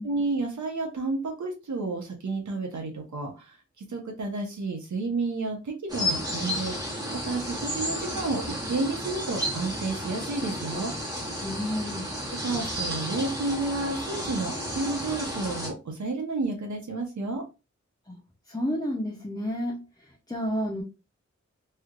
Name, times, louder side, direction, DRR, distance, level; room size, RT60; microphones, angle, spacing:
voice 1, 0.0-6.8 7.1-10.9 12.4-17.4, right 3 dB, 80° right, 1 dB, 0.8 m, -31 dB
sound 1, 5.9-15.7, equal, 15° right, 1.4 m, -32 dB
voice 2, 11.4-12.1 18.1-18.2 18.5-20.8, equal, 15° left, -1 dB, 0.6 m, -31 dB
3.2 x 2.8 x 2.4 m, 0.28 s
wide cardioid pair, 80°, 29 cm